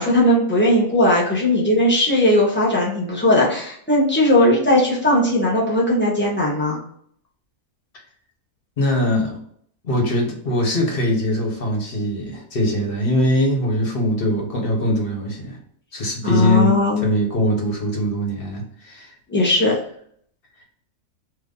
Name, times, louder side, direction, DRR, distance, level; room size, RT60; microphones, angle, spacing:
voice 1, 0.0-6.8 16.2-17.1 19.3-19.7, left 1 dB, 10° left, -6 dB, 0.9 m, -18 dB
voice 2, 8.8-9.4 9.8-15.6 15.9-19.1, equal, 45° left, 0 dB, 1.1 m, -22 dB
2.9 x 2.6 x 3.6 m, 0.64 s
omnidirectional pair, 1.4 m